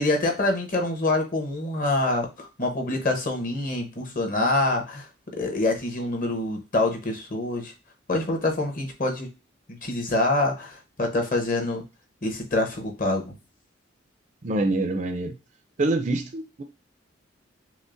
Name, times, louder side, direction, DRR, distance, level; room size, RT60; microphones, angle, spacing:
voice 1, 0.0-7.7 8.1-9.3 9.7-11.8 12.2-13.4, left 2 dB, 45° left, 3 dB, 0.9 m, -26 dB
voice 2, 14.4-15.4 15.8-16.6, right 2 dB, 40° right, 7 dB, 0.5 m, -25 dB
6.0 x 2.1 x 2.5 m, 0.29 s
head